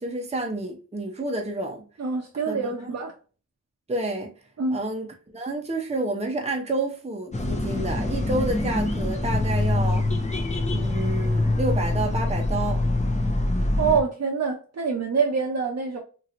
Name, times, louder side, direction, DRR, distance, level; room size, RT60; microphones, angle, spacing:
voice 1, 0.0-1.8 2.5-3.0 3.9-4.3 4.7-5.1 5.3-10.1 10.7-12.8, right 2 dB, 20° right, 0.7 m, -29 dB
voice 2, 2.0-3.1 4.6-4.8 13.8-16.0, right 5 dB, 60° right, 0.7 m, -25 dB
sound 1, 7.3-14.0, left 2 dB, 25° left, 0.7 m, -24 dB
3.0 x 2.9 x 2.5 m
wide cardioid pair, 70°, 30 cm